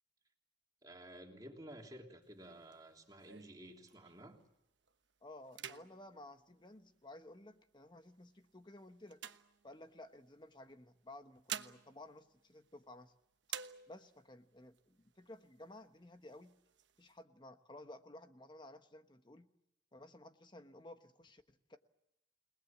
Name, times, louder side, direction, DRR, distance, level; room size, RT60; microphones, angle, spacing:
voice 1, 0.8-4.4, right 1 dB, 20° right, 1 dB, 3.3 m, -53 dB
sound 1, 2.2-4.4 4.9-5.1 5.4-7.4 8.0-10.2 11.1-13.1 13.4-14.3 14.7-14.8 15.1-15.8 16.2-17.1, right 9 dB, 65° right, 1.1 m, -50 dB
voice 2, 5.2-9.2 9.6-13.1 13.9-16.5 17.0-19.5 19.9-21.8, left 1 dB, 25° left, 8 dB, 1.2 m, -55 dB
29.5 x 20.0 x 7.4 m, 0.87 s
head